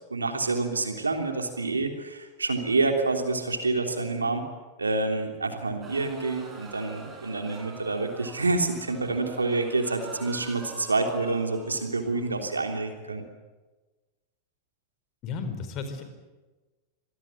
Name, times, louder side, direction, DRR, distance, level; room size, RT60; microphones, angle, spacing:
voice 1, 0.1-4.5 4.8-13.2, right 3 dB, 80° right, 5 dB, 3.3 m, -28 dB
sound 1, 5.8-13.0, right 3 dB, 20° right, 6.3 m, -46 dB
voice 2, 15.2-16.0, left 5 dB, 35° left, 8 dB, 4.4 m, -33 dB
26.0 x 18.5 x 9.7 m, 1.2 s
figure-of-eight pair, 90°, 0 cm